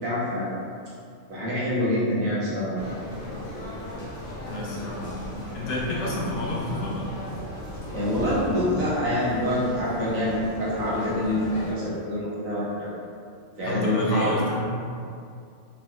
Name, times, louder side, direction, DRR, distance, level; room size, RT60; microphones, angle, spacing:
voice 1, 0.0-0.5 1.3-2.7 7.9-12.9 13.6-14.3, left 1 dB, 90° right, -8 dB, 1.3 m, -26 dB
sound 1, 2.8-11.7, left 1 dB, 50° left, 0.5 m, -36 dB
voice 2, 4.5-7.1 13.6-14.6, left 1 dB, 70° left, -4 dB, 0.9 m, -30 dB
3.4 x 2.3 x 2.3 m, 2.4 s
omnidirectional pair, 1.4 m